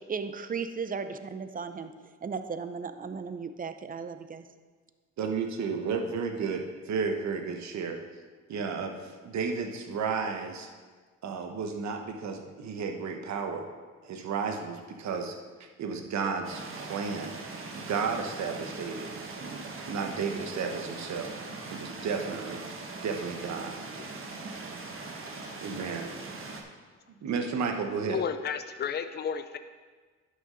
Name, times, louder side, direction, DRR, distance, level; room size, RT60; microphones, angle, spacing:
voice 1, 0.0-1.9 2.2-4.4, right 5 dB, 30° right, 10 dB, 0.6 m, -36 dB
voice 2, 5.2-8.0 8.5-10.7 11.2-13.7 14.0-15.4 15.8-17.4 17.7-19.1 19.4-21.3 21.7-22.6 23.0-23.8 25.6-26.1 27.2-28.2, right 5 dB, 65° right, 5 dB, 1.1 m, -33 dB
sound 1, 16.4-26.6, right 3 dB, 45° right, 1.3 m, -41 dB
voice 3, 28.0-29.6, left 7 dB, 35° left, 10 dB, 0.5 m, -33 dB
11.0 x 6.5 x 3.9 m, 1.5 s
cardioid pair, 90°, 30 cm